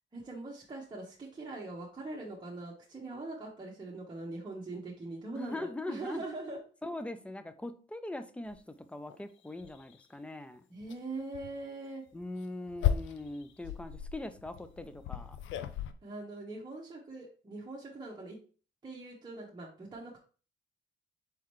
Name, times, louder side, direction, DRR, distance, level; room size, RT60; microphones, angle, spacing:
voice 1, 0.1-6.6 10.7-12.0 16.0-18.4 18.8-20.2, right 2 dB, 20° right, 1.1 m, -42 dB
voice 2, 5.3-6.2 6.8-10.6 12.1-15.4, left 2 dB, 5° left, 0.5 m, -41 dB
sound 1, 8.5-8.6 9.1-9.2 9.6-10.0 10.8-11.0 11.3-11.5 12.2-15.9, left 10 dB, 75° left, 0.5 m, -35 dB
4.3 x 3.8 x 3.1 m
cardioid pair, 90°, 20 cm